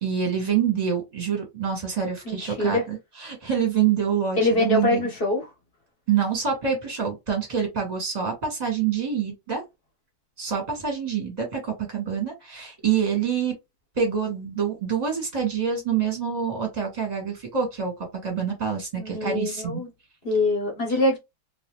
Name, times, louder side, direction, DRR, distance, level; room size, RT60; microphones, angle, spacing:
voice 1, 0.0-5.1 6.1-9.6 10.4-13.5 13.9-19.8, right 7 dB, 25° right, 1.4 m, -26 dB
voice 2, 2.2-2.8 4.4-5.5 18.9-19.9 20.2-21.2, left 2 dB, 35° left, 1.2 m, -24 dB
3.0 x 3.0 x 3.0 m
omnidirectional pair, 2.1 m